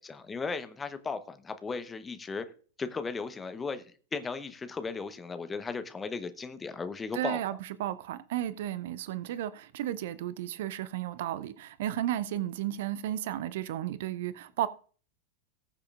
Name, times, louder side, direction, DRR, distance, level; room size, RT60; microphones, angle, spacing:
voice 1, 0.1-2.5 2.8-3.8 4.1-7.4, left 4 dB, 15° left, 0.9 m, -36 dB
voice 2, 7.1-14.7, right 12 dB, 55° right, 0.5 m, -33 dB
20.0 x 6.8 x 2.4 m
figure-of-eight pair, 90°, 0 cm